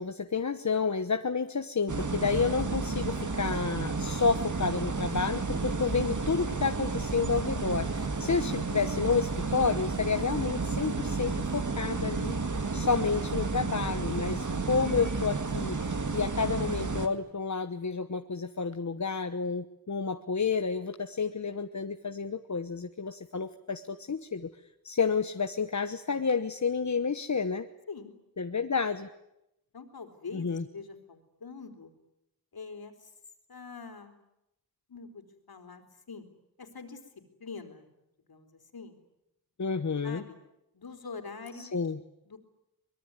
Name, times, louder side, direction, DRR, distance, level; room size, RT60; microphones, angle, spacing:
voice 1, 0.0-12.3 12.7-24.5 24.8-27.7 28.4-29.1 30.3-30.6 39.6-40.2 41.6-42.0, left 5 dB, 50° left, 8 dB, 1.2 m, -30 dB
sound 1, 1.9-17.1, right 4 dB, 55° right, 2.3 m, -32 dB
voice 2, 8.2-8.5 27.9-28.1 29.7-31.9 32.5-33.1 33.5-34.2 34.9-36.2 36.6-37.0 37.4-37.9 38.3-39.0 40.0-40.4 40.7-41.7 42.3-42.4, left 4 dB, 75° left, 6 dB, 4.0 m, -44 dB
24.5 x 22.0 x 9.7 m, 0.86 s
wide cardioid pair, 85°, 37 cm